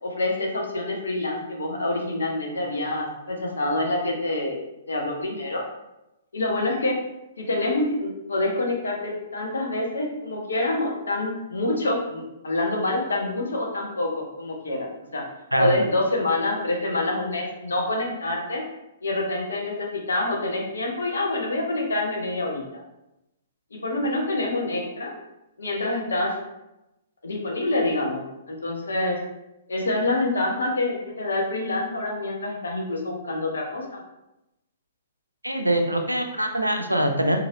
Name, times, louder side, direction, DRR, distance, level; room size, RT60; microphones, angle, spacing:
voice 1, 0.0-4.6 4.9-5.6 6.3-7.0 7.4-15.2 15.6-18.6 19.0-22.6 23.7-25.1 25.6-26.4 27.2-28.2 28.5-29.2 29.7-34.0, left 2 dB, 70° left, 0 dB, 0.7 m, -26 dB
voice 2, 35.4-37.4, right 1 dB, 85° right, 4 dB, 0.4 m, -23 dB
3.1 x 2.6 x 2.6 m, 0.91 s
figure-of-eight pair, 115°, 0 cm